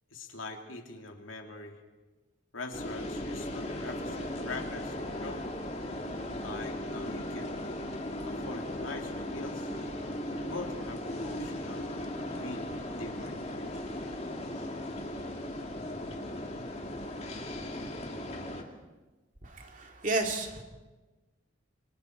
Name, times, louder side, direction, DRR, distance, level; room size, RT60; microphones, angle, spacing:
voice 1, 0.1-1.8 2.5-5.5 6.4-7.7 8.2-9.7 10.5-12.2 12.4-13.8, left 3 dB, 80° left, 3 dB, 2.8 m, -43 dB
sound 1, 2.7-18.6, left 1 dB, 30° left, 2.3 m, -37 dB
voice 2, 19.4-20.6, right 2 dB, 40° right, 3 dB, 2.7 m, -32 dB
29.0 x 24.0 x 4.6 m, 1.2 s
head